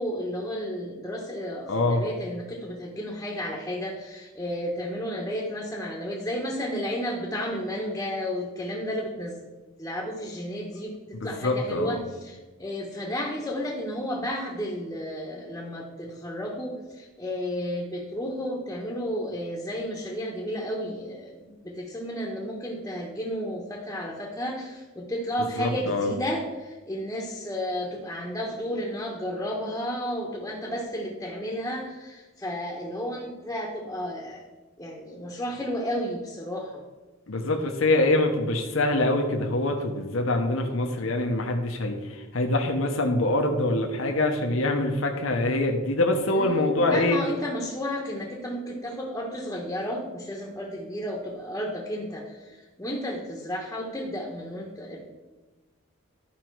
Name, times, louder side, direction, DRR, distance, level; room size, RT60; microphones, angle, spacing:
voice 1, 0.0-9.5 9.8-34.4 34.8-36.8 46.3-55.1, equal, 10° left, -2 dB, 1.0 m, -32 dB
voice 2, 1.7-2.0 11.2-12.0 25.6-26.1 37.3-47.2, left 2 dB, 70° left, 3 dB, 1.0 m, -24 dB
11.5 x 5.2 x 4.6 m, 1.2 s
head